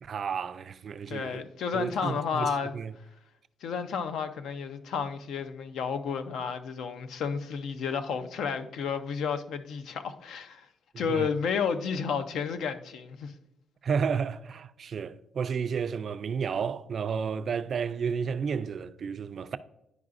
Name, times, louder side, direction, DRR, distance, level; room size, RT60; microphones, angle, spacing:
voice 1, 0.0-1.4 1.7-2.9 11.1-11.3 13.8-19.6, right 6 dB, 50° right, 0.3 m, -32 dB
voice 2, 1.1-2.8 3.6-10.7 11.0-13.3, left 6 dB, 80° left, 0.5 m, -31 dB
11.0 x 4.7 x 2.5 m
cardioid pair, 115°, 0 cm